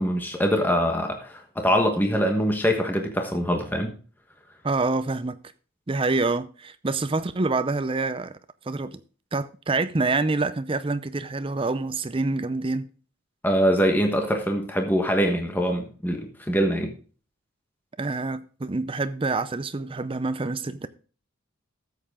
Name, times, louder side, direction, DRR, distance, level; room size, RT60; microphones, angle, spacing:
voice 1, 0.0-3.9 13.4-16.9, equal, 10° left, 1.2 m, -23 dB
voice 2, 4.6-5.4 5.9-8.4 8.6-9.0 9.3-12.9 18.0-20.9, right 3 dB, 25° right, 0.5 m, -26 dB
13.0 x 7.7 x 3.7 m
head